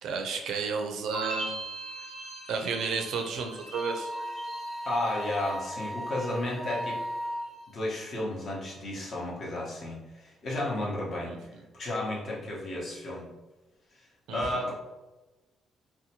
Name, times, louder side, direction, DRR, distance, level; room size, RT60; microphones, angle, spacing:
voice 1, 0.0-1.6 2.5-4.1 11.3-11.4 14.3-14.7, right 5 dB, 80° right, 4 dB, 0.4 m, -32 dB
sound 1, 1.1-6.2 6.4-7.1, right 1 dB, 75° left, 1.1 m, -41 dB
Wind instrument woodwind instrument, 3.7-7.6, equal, 10° right, 0.4 m, -36 dB
voice 2, 4.8-7.0 7.7-11.3 11.7-13.3 14.3-14.7, left 1 dB, 55° left, -3 dB, 0.9 m, -32 dB
2.7 x 2.2 x 2.8 m, 1.1 s
cardioid pair, 90°, 0 cm